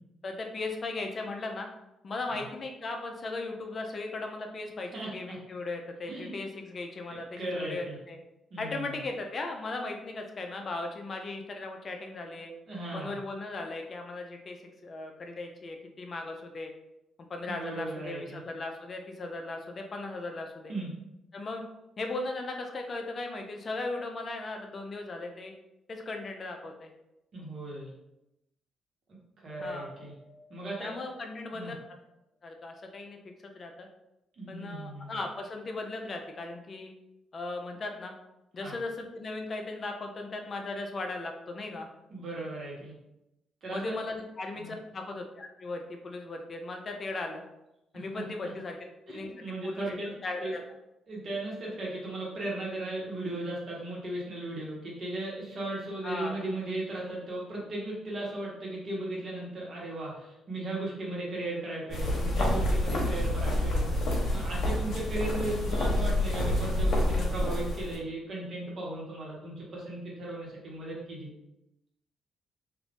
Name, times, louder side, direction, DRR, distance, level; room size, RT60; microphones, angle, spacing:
voice 1, 0.2-1.7 2.0-8.2 8.6-12.5 12.9-14.6 14.8-16.7 17.3-20.7 21.3-21.6 22.0-25.5 25.9-26.9 29.6-29.9 30.8-31.7 32.4-33.2 33.5-33.9 34.5-36.9 37.3-38.1 38.5-41.9 43.7-47.4 47.9-48.8 49.1-49.9 50.2-50.6 56.0-56.4, left 2 dB, 40° left, 3 dB, 0.4 m, -37 dB
voice 2, 4.9-5.4 6.1-6.3 7.1-8.0 8.5-9.0 12.7-13.1 17.4-18.4 20.7-20.9 27.3-27.9 29.1-30.1 30.5-30.9 31.5-31.7 34.4-35.2 38.6-38.7 42.1-42.9 43.6-44.0 44.6-44.7 47.9-48.5 49.1-50.1 50.4-50.5 51.1-71.3, right 2 dB, 50° right, -5 dB, 1.2 m, -37 dB
sound 1, 29.6-32.6, left 1 dB, 30° right, 0.6 m, -47 dB
sound 2, 61.9-68.0, left 1 dB, 60° left, 0.9 m, -28 dB
2.5 x 2.5 x 3.5 m, 0.89 s
cardioid pair, 90°, 0 cm